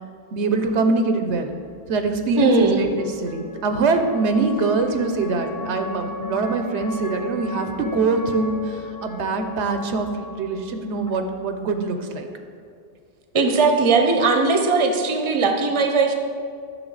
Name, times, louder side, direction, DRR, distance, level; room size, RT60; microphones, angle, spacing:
voice 1, 0.3-1.6 1.9-12.3, right 3 dB, 90° right, 7 dB, 1.0 m, -23 dB
sound 1, 1.5-11.8, left 3 dB, 35° left, 0.3 m, -37 dB
voice 2, 2.4-2.8 13.3-16.1, right 4 dB, 30° right, 5 dB, 0.7 m, -19 dB
9.3 x 6.6 x 3.9 m, 2.2 s
omnidirectional pair, 1.1 m